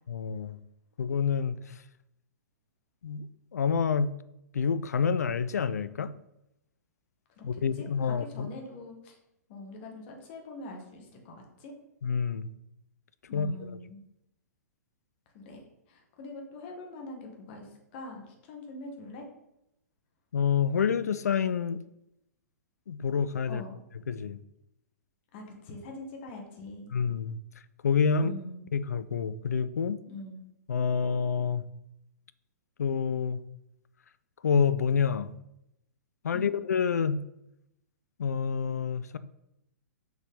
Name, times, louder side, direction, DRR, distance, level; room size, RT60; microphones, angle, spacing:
voice 1, 0.1-0.6 1.0-1.6 3.0-3.3 3.5-4.1 4.5-6.1 7.4-8.5 12.0-12.5 13.3-13.8 20.3-21.8 22.9-23.6 24.1-24.4 26.9-27.4 27.8-28.3 28.7-30.0 30.7-31.6 32.8-33.4 34.4-35.3 36.2-37.2 38.2-39.2, left 6 dB, 70° left, 0.4 m, -28 dB
voice 2, 7.4-9.2 9.5-11.7 13.3-14.0 15.3-15.6 15.9-19.3 23.4-23.8 25.3-26.9 28.2-28.7 30.1-30.4 36.3-36.5, left 2 dB, 40° left, 1.5 m, -43 dB
5.7 x 4.4 x 3.7 m
figure-of-eight pair, 110°, 9 cm